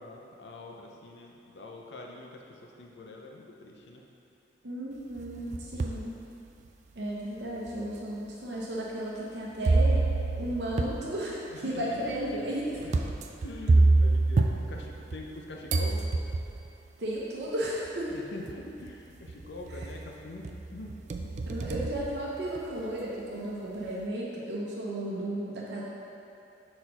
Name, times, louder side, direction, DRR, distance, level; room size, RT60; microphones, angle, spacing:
voice 1, 0.0-4.0 11.6-12.2 13.1-13.2 13.4-16.1 18.1-21.4, left 2 dB, 75° left, 0 dB, 0.6 m, -44 dB
voice 2, 4.6-6.2 7.0-10.0 10.4-13.0 17.0-18.2 19.7-19.9 21.5-25.8, right 1 dB, 70° right, -5 dB, 0.8 m, -34 dB
sound 1, 5.2-6.1 6.7-6.8 7.7-7.8 9.6-15.4 15.7-16.7 17.9-18.0 18.5-18.9 19.3-20.1 20.4-22.8, right 2 dB, 40° right, 0.3 m, -27 dB
4.4 x 4.3 x 5.4 m, 2.7 s
head